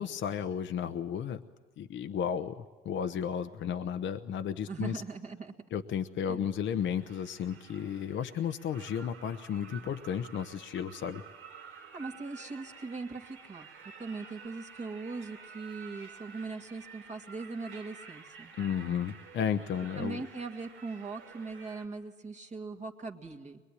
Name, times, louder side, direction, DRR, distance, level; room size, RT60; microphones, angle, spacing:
voice 1, 0.0-1.4 1.8-5.0 5.7-11.2 18.6-20.3, left 8 dB, 70° left, 8 dB, 0.9 m, -33 dB
voice 2, 4.7-5.5 6.3-6.4 11.9-13.7 14.0-18.5 20.0-23.6, right 4 dB, 35° right, 1 dB, 2.0 m, -40 dB
sound 1, 6.7-21.9, right 6 dB, 85° right, 2.9 m, -51 dB
23.0 x 21.5 x 9.9 m, 1.3 s
cardioid pair, 90°, 20 cm